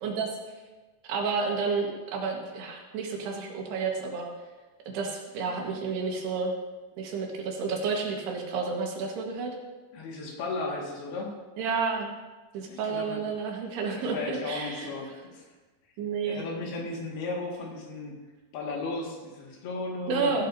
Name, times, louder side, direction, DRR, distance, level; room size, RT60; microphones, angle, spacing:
voice 1, 1.1-4.3 4.9-6.5 7.0-9.5 11.6-12.1 12.5-14.9 16.0-16.4 20.1-20.4, right 4 dB, 85° right, 0 dB, 3.7 m, -30 dB
voice 2, 9.9-11.4 12.7-13.2 13.9-15.5 16.2-18.2 18.5-20.4, left 3 dB, 75° left, -1 dB, 3.9 m, -35 dB
15.5 x 12.0 x 2.7 m, 1.2 s
omnidirectional pair, 4.6 m